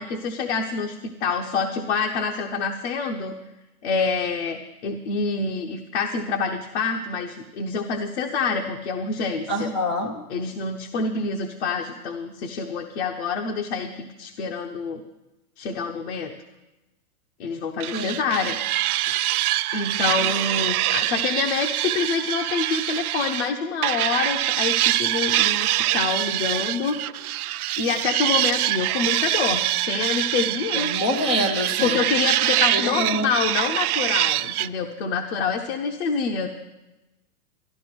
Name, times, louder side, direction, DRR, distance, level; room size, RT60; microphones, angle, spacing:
voice 1, 0.0-3.4 3.8-9.7 10.3-15.0 15.6-16.3 17.4-18.6 19.0-19.2 19.7-27.0 27.8-30.9 31.8-36.5, left 5 dB, 45° left, 4 dB, 1.0 m, -27 dB
voice 2, 9.5-10.2 17.9-18.1 30.7-32.0 32.7-33.3, equal, 15° left, 1 dB, 0.5 m, -25 dB
sound 1, 17.8-23.5 23.8-34.7, right 15 dB, 70° right, 0.6 m, -24 dB
13.0 x 11.5 x 6.1 m, 1.0 s
hypercardioid pair, 165°, 46 cm